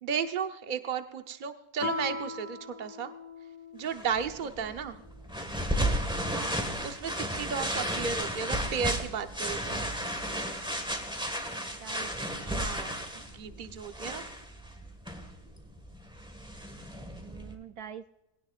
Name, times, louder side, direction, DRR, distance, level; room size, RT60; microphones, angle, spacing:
voice 1, 0.0-3.1 3.7-5.0 6.8-9.8 12.4-14.2, right 6 dB, 35° right, 7 dB, 0.9 m, -34 dB
Guitar, 1.8-4.2, left 3 dB, 30° left, 1.3 m, -38 dB
sound 1, 3.9-17.5, equal, 5° right, 1.5 m, -34 dB
voice 2, 6.3-6.7 11.7-12.1 17.2-18.2, right 8 dB, 70° right, 9 dB, 1.1 m, -45 dB
20.0 x 17.5 x 2.5 m, 0.90 s
omnidirectional pair, 1.8 m